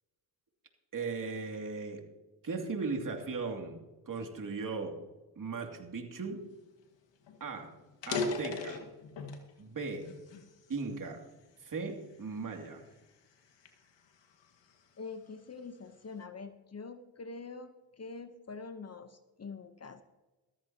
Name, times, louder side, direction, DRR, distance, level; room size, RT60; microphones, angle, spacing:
voice 1, 0.9-2.0 2.4-3.8 4.1-4.9 5.4-6.4 7.4-7.7 8.1-8.8 9.6-10.1 10.7-11.2 11.6-12.8, right 4 dB, 45° right, 3 dB, 2.7 m, -37 dB
sound 1, 6.8-6.9 7.2-7.4 7.9-9.5 10.0-11.3 11.9-12.2 12.8-14.8, left 4 dB, 70° left, 2.0 m, -38 dB
voice 2, 15.0-20.0, left 4 dB, 35° left, 10 dB, 1.0 m, -45 dB
14.0 x 14.0 x 2.9 m, 1.1 s
cardioid pair, 70°, 46 cm